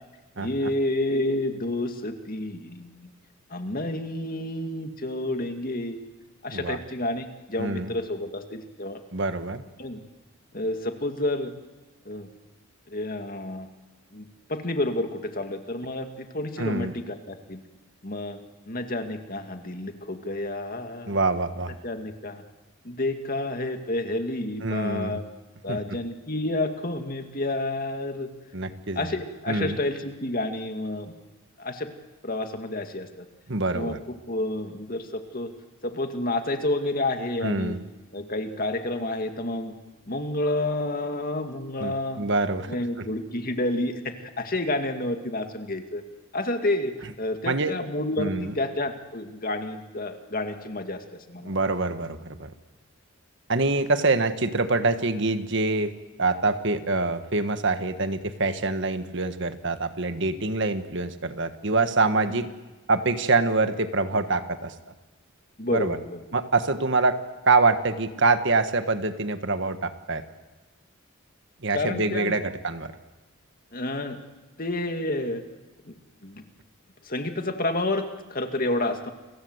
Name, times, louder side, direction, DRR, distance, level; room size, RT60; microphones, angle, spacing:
voice 1, 0.4-3.1 3.5-6.0 6.4-9.0 9.8-10.0 10.5-11.5 12.1-12.3 12.9-13.7 14.1-17.6 18.0-18.4 18.7-21.2 21.8-22.4 22.8-25.2 25.6-28.3 28.9-31.1 31.6-31.9 32.2-33.3 33.7-34.0 34.3-35.5 35.8-37.8 38.1-39.7 40.1-42.3 42.7-46.0 46.3-51.6 62.3-62.4 65.6-66.2 71.7-72.3 73.7-74.2 74.6-75.4 75.9-76.0 76.2-76.4 77.0-79.1, left 1 dB, 40° left, 6 dB, 2.3 m, -30 dB
voice 2, 7.6-7.9 9.1-9.6 16.6-16.9 21.1-21.7 24.6-25.2 25.7-25.8 28.5-29.1 29.5-29.8 33.5-34.0 37.4-37.8 41.8-43.0 47.4-47.8 48.2-48.5 51.4-52.5 53.5-62.5 62.9-64.7 65.7-66.0 66.3-67.2 67.4-70.2 71.6-72.9, right 3 dB, 55° right, 9 dB, 1.5 m, -25 dB
30.0 x 23.0 x 8.1 m, 1.2 s
head